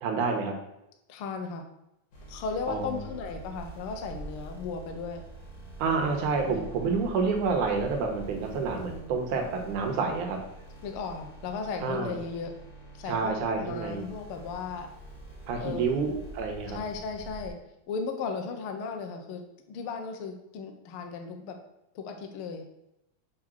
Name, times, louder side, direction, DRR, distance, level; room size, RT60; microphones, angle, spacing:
voice 1, 0.0-0.5 2.7-3.1 5.8-10.4 11.8-12.2 13.1-14.1 15.5-16.8, right 4 dB, 80° right, 3 dB, 2.4 m, -29 dB
voice 2, 1.1-1.6 2.3-5.2 6.5-6.7 10.8-12.5 12.9-14.9 15.6-16.0 16.7-17.6 17.9-19.4 19.7-21.5 21.9-22.6, left 5 dB, 70° left, 4 dB, 1.3 m, -36 dB
sound 1, 2.1-17.5, right 2 dB, 90° left, 3.7 m, -45 dB
7.0 x 3.8 x 6.1 m, 0.85 s
omnidirectional pair, 3.5 m